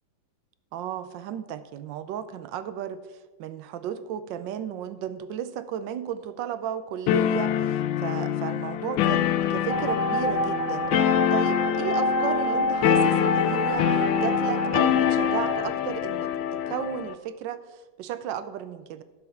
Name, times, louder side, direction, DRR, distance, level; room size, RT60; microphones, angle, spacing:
voice 1, 0.7-10.9 11.3-13.9 14.2-19.0, right 9 dB, 75° right, 13 dB, 1.3 m, -34 dB
sound 1, 7.1-17.1, left 10 dB, 80° left, 1.4 m, -25 dB
sound 2, 9.7-15.6, right 1 dB, 20° right, 1.8 m, -27 dB
11.0 x 7.2 x 5.6 m, 1.2 s
omnidirectional pair, 2.2 m